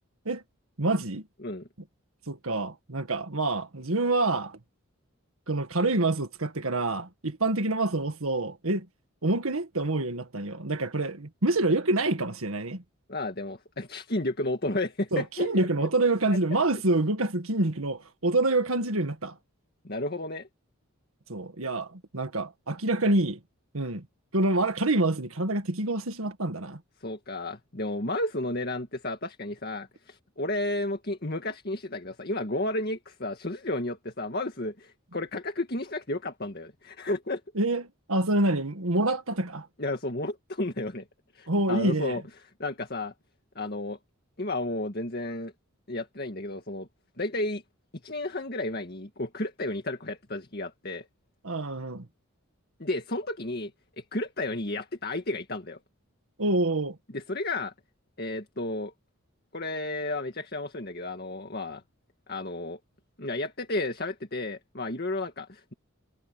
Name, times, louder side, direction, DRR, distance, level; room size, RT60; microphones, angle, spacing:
voice 1, 0.8-1.2 2.3-4.6 5.5-8.9 9.2-12.8 15.1-19.3 21.3-23.4 23.7-24.1 24.3-26.8 37.6-39.7 41.5-42.2 51.4-52.1 56.4-57.0, right 2 dB, 80° right, 1.8 m, -27 dB
voice 2, 13.1-15.9 19.8-20.5 27.0-37.4 39.8-41.0 41.3-42.2 42.6-43.1 43.6-44.0 44.4-45.5 45.9-46.9 47.2-47.6 48.0-51.1 52.8-53.7 54.0-55.8 57.1-57.7 58.2-58.9 59.5-61.8 62.3-62.8 63.2-65.7, left 2 dB, 45° left, 2.0 m, -32 dB
head